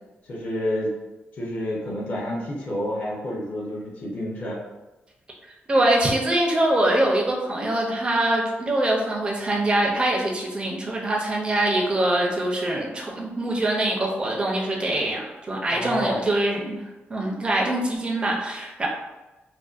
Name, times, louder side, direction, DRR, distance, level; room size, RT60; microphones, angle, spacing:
voice 1, 0.3-0.9 1.3-4.6 15.7-16.2, left 1 dB, 45° left, -4 dB, 0.6 m, -29 dB
voice 2, 5.7-16.8 17.1-18.9, right 1 dB, 25° right, -1 dB, 0.4 m, -23 dB
2.5 x 2.1 x 2.3 m, 1.1 s
wide cardioid pair, 170°, 4 cm